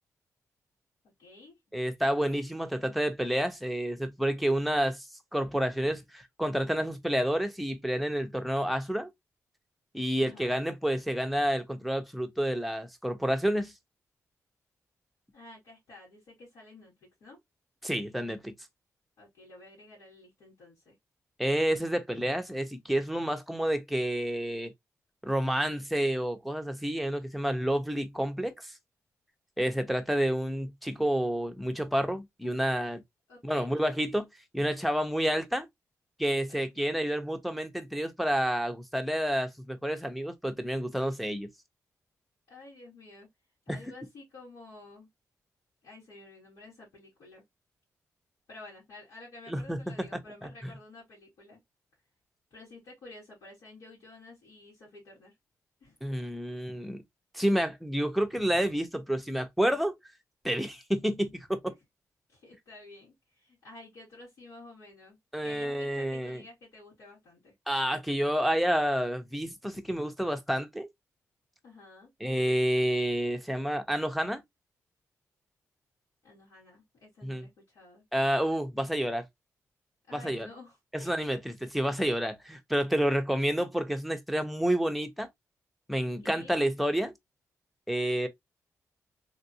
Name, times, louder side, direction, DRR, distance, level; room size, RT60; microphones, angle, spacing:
voice 1, 1.2-1.6 10.2-10.8 15.3-17.4 19.2-21.0 33.3-33.8 36.5-37.0 42.5-43.3 43.7-45.1 45.8-47.4 48.5-51.6 52.5-55.3 55.8-56.0 62.3-65.2 65.4-67.5 71.6-72.1 76.2-78.1 80.1-81.3 86.2-86.6, left 2 dB, 85° left, 2.2 m, -51 dB
voice 2, 1.7-9.1 9.9-13.7 17.8-18.5 21.4-24.7 25.2-28.7 29.6-33.0 33.4-34.3 34.5-35.7 36.2-41.5 43.7-43.8 49.5-49.8 56.0-57.0 57.3-60.0 60.4-61.7 65.3-66.4 67.7-70.9 72.2-74.4 77.2-77.4 78.1-79.2 80.1-80.5 80.9-85.3 85.9-87.1 87.9-88.3, equal, ahead, 0.7 m, -29 dB
3.5 x 2.5 x 2.7 m
cardioid pair, 100°, 6 cm